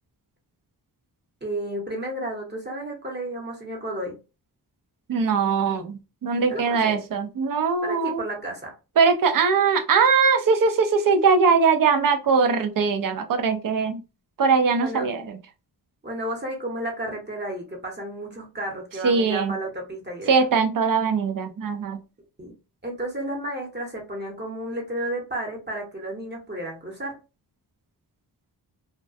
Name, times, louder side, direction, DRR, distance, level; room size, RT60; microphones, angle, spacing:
voice 1, 1.4-4.2 6.5-7.0 7.8-8.7 14.8-15.1 16.0-20.3 22.4-22.5 22.8-27.2, right 1 dB, 25° right, 0 dB, 0.9 m, -32 dB
voice 2, 5.1-8.2 9.0-14.0 14.4-15.4 19.0-19.6 20.3-22.0, right 5 dB, 55° right, 7 dB, 0.5 m, -21 dB
2.2 x 2.2 x 2.5 m, 0.30 s
wide cardioid pair, 95°, 40 cm